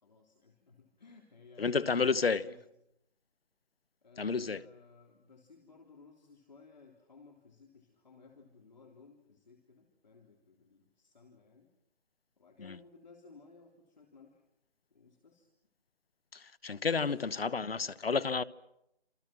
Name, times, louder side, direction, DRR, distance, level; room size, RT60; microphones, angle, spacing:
voice 1, 0.0-2.6 4.0-11.7 12.4-14.4 14.9-15.5 16.9-17.3, left 4 dB, 45° left, 3.7 m, -58 dB
voice 2, 1.6-2.5 4.2-4.7 12.6-12.8 16.3-18.4, left 5 dB, 65° left, 1.2 m, -31 dB
28.5 x 27.5 x 6.2 m
figure-of-eight pair, 175°, 32 cm